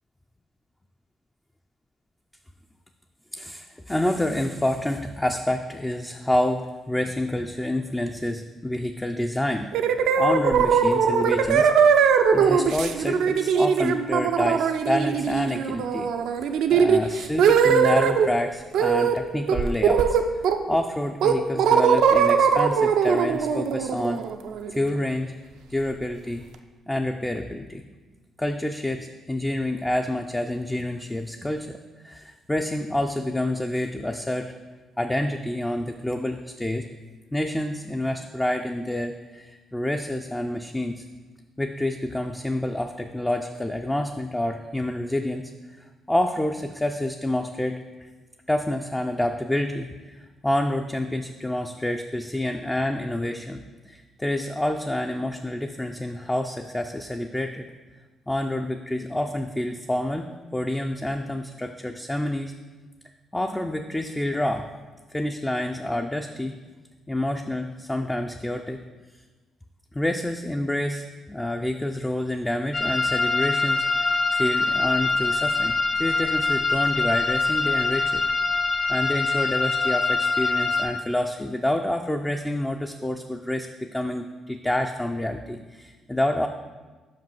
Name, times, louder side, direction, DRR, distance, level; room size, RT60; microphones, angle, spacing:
voice 1, 3.3-9.7 10.2-16.1 16.4-20.2 20.7-24.2 24.7-25.4 25.7-26.4 26.9-27.8 28.4-31.8 32.0-34.5 35.0-36.9 37.3-41.1 41.6-47.8 48.5-57.7 58.3-60.3 60.5-62.5 63.3-64.7 65.1-66.6 67.1-68.8 69.9-78.2 78.9-86.5, left 1 dB, 10° left, 4 dB, 0.4 m, -28 dB
sound 1, 9.7-18.3 18.7-19.2 19.5-20.8 21.2-25.0, right 6 dB, 80° right, 0.4 m, -20 dB
sound 2, 72.7-80.8, left 3 dB, 40° left, 1.0 m, -24 dB
5.5 x 5.2 x 5.4 m, 1.3 s
cardioid pair, 90°, 0 cm